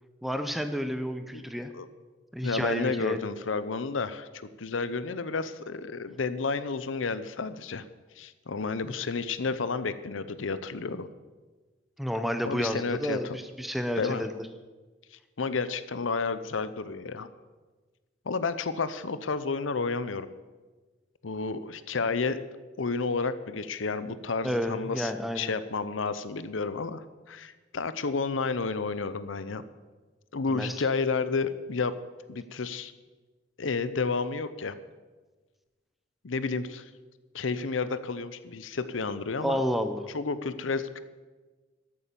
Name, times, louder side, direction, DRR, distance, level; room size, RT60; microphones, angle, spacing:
voice 1, 0.2-1.7 2.3-3.2 8.8-8.9 12.0-13.3 13.6-14.4 24.4-25.5 30.5-30.7 39.4-40.0, equal, ahead, 8 dB, 0.7 m, -30 dB
voice 2, 2.4-7.8 8.2-11.1 12.5-13.4 14.0-14.3 15.1-17.3 18.3-20.3 21.2-22.4 22.8-29.6 30.3-32.0 32.3-32.9 33.6-34.8 36.2-36.9 37.3-39.6 40.1-41.0, left 4 dB, 90° left, 14 dB, 0.7 m, -31 dB
13.0 x 8.5 x 6.9 m, 1.3 s
head